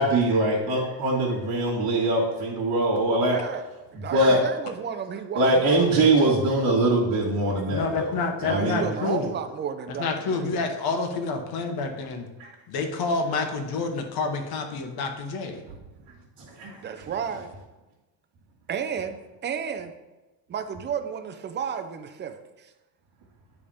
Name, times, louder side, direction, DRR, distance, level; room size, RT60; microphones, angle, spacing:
voice 1, 0.0-3.4 4.1-4.4 5.4-8.1 8.4-8.9 16.6-16.8, right 2 dB, 60° right, -5 dB, 2.2 m, -22 dB
voice 2, 3.3-3.7 4.0-5.5 8.5-10.5 12.4-12.5 16.8-17.5 18.7-19.9 20.5-22.7, right 7 dB, 25° right, 7 dB, 0.5 m, -32 dB
voice 3, 7.7-9.3 9.9-12.3 12.7-15.6, left 4 dB, 55° left, 5 dB, 1.3 m, -28 dB
10.0 x 3.6 x 5.0 m, 1.1 s
cardioid pair, 160°, 45 cm